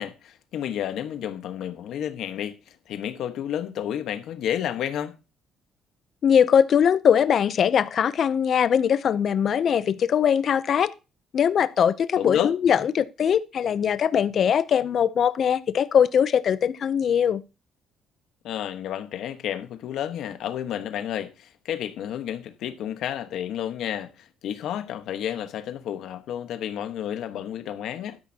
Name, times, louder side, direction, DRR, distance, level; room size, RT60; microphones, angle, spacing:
voice 1, 0.0-5.2 12.2-12.5 18.4-28.2, left 10 dB, 65° left, 1.2 m, -31 dB
voice 2, 6.2-10.9 11.3-17.4, left 8 dB, 45° left, 0.6 m, -21 dB
12.0 x 10.5 x 2.8 m
cardioid pair, 155°, 0 cm